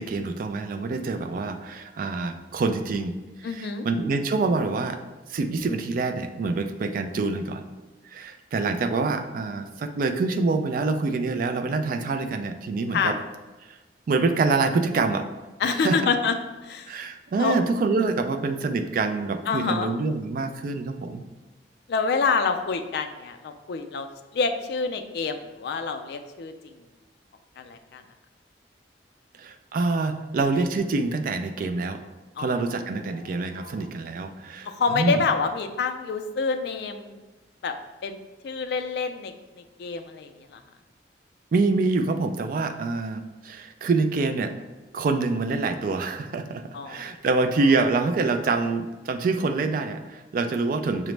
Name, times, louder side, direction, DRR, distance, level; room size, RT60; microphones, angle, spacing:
voice 1, 0.0-3.1 3.4-5.0 5.3-7.6 8.0-13.2 13.7-13.8 14.1-15.2 15.6-16.0 16.9-21.2 29.4-32.0 32.4-35.2 41.5-44.5 44.9-51.1, right 3 dB, 50° right, 8 dB, 0.3 m, -26 dB
voice 2, 3.4-3.9 12.9-13.2 15.6-16.3 16.6-17.0 17.4-17.5 19.5-19.9 21.9-26.5 27.6-28.0 32.4-32.6 33.4-33.8 34.7-37.1 37.6-37.7 38.0-38.2 38.4-39.3 39.8-40.6 46.7-47.1, left 5 dB, 65° left, 7 dB, 0.3 m, -27 dB
5.8 x 2.0 x 3.2 m, 1.2 s
head